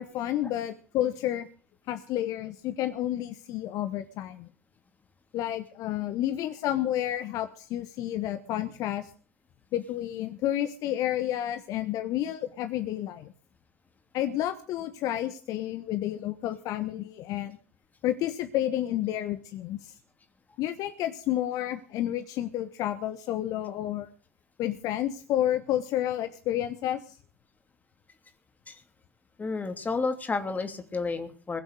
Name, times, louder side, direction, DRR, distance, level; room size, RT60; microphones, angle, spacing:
voice 1, 0.0-1.5 1.9-4.5 5.3-9.1 9.7-13.3 14.1-17.6 18.0-19.9 20.6-24.1 24.6-27.2, left 12 dB, 50° left, 9 dB, 1.2 m, -30 dB
voice 2, 29.4-31.6, left 4 dB, 20° left, 7 dB, 2.9 m, -31 dB
21.5 x 7.8 x 8.1 m, 0.42 s
figure-of-eight pair, 65°, 7 cm